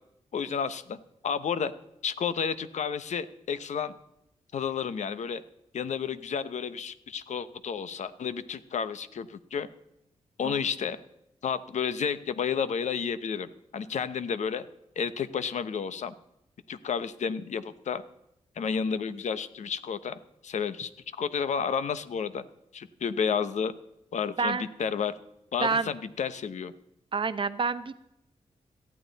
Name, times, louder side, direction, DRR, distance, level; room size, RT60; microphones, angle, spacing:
voice 1, 0.3-1.0 1.2-1.7 2.0-3.9 4.5-5.4 5.7-9.7 10.4-11.0 11.4-14.7 15.0-16.1 16.7-18.0 18.6-20.9 21.2-22.4 22.7-23.7 24.1-25.1 25.5-26.7, left 6 dB, 75° left, 13 dB, 0.9 m, -31 dB
voice 2, 25.6-25.9 27.1-28.0, right 4 dB, 45° right, 12 dB, 0.9 m, -28 dB
18.0 x 13.5 x 4.1 m, 0.83 s
wide cardioid pair, 100°, 12 cm